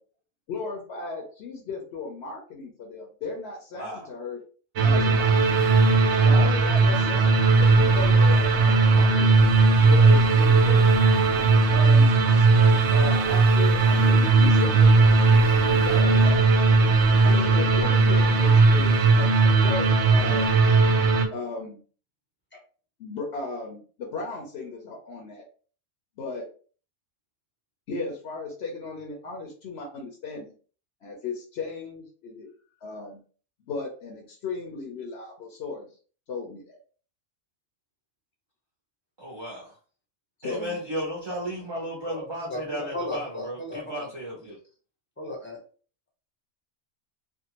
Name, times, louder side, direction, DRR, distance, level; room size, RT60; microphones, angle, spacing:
voice 1, 0.5-4.4 4.8-5.4 6.2-7.3 7.6-9.4 9.8-10.9 11.7-12.5 12.9-16.5 17.2-19.3 19.6-20.6 21.3-21.8 23.0-25.5 26.2-26.5 27.9-30.5 31.0-32.5 32.8-33.2 33.7-35.9 36.3-36.8 40.4-40.8, left 3 dB, 60° left, -1 dB, 0.9 m, -35 dB
voice 2, 3.7-4.1 6.4-7.3 39.2-39.8 40.4-44.6, equal, 35° right, -4 dB, 0.4 m, -35 dB
sound 1, 4.8-21.3, right 3 dB, 70° right, 0.8 m, -18 dB
voice 3, 42.1-44.1 45.2-45.6, left 1 dB, 10° left, -1 dB, 0.6 m, -35 dB
2.6 x 2.3 x 2.8 m, 0.40 s
omnidirectional pair, 1.3 m